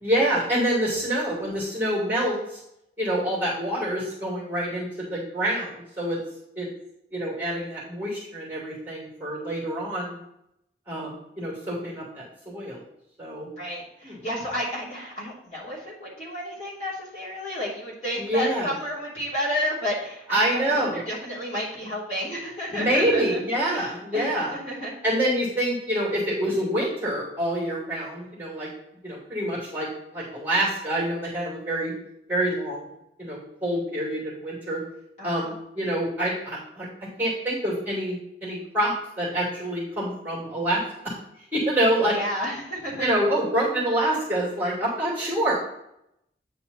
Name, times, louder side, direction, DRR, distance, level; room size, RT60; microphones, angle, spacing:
voice 1, 0.0-2.6 3.0-6.2 6.6-6.7 7.1-10.2 10.9-12.8 13.2-13.5 14.0-14.2 18.2-18.7 20.3-21.0 22.7-24.6 25.0-28.7 29.0-31.9 32.3-32.9 33.2-34.8 35.2-36.9 37.2-41.1 41.5-42.2 43.0-45.5, right 1 dB, 10° right, -6 dB, 2.7 m, -26 dB
voice 2, 13.6-24.9 35.2-35.5 42.0-43.1, equal, 40° left, -8 dB, 3.1 m, -32 dB
9.3 x 4.3 x 4.0 m, 0.80 s
head